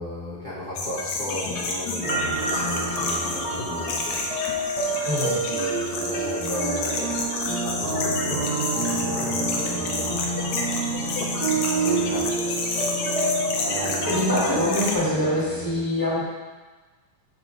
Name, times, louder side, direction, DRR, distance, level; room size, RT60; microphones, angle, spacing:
voice 1, 0.0-4.2 5.3-8.5 8.7-10.5 10.8-10.9 11.7-12.3 13.6-14.4 15.6-15.7, left 1 dB, 45° left, -12 dB, 0.6 m, -35 dB
sound 1, 0.8-15.0, left 3 dB, 75° left, 2.1 m, -30 dB
sound 2, 2.0-15.6, right 3 dB, 35° right, 1.7 m, -28 dB
voice 2, 5.0-5.3 14.0-16.2, left 1 dB, 10° left, -9 dB, 1.6 m, -24 dB
6.1 x 5.4 x 4.5 m, 1.3 s
omnidirectional pair, 3.5 m